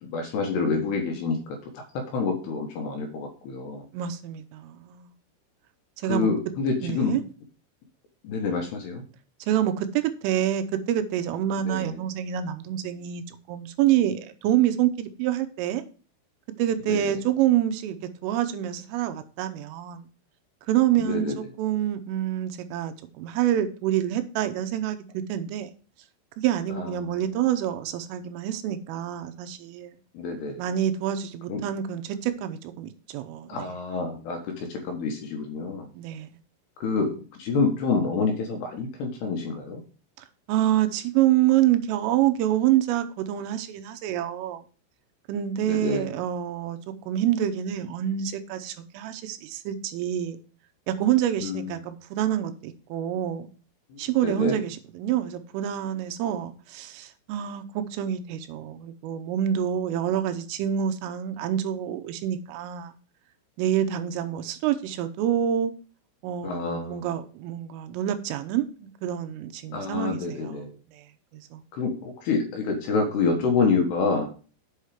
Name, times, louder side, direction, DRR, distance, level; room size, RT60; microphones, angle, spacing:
voice 1, 0.0-3.9 6.1-7.2 8.2-9.0 11.7-12.0 16.9-17.2 21.0-21.4 26.7-26.9 30.1-30.6 31.5-31.6 33.5-35.9 36.8-39.8 45.7-46.1 51.4-51.7 53.9-54.6 66.4-67.1 69.7-70.8 71.7-74.3, left 4 dB, 65° left, 2.9 m, -27 dB
voice 2, 3.9-5.1 6.0-6.3 6.8-7.2 9.5-15.8 16.6-18.0 18.2-20.0 20.7-25.7 26.4-29.9 30.6-33.6 35.9-36.3 40.5-44.6 45.3-46.8 47.1-50.4 50.9-53.5 54.0-62.9 63.6-65.7 66.2-70.6 70.9-71.0 71.3-71.6, right 11 dB, 85° right, 3.3 m, -27 dB
8.0 x 5.6 x 4.9 m
omnidirectional pair, 5.8 m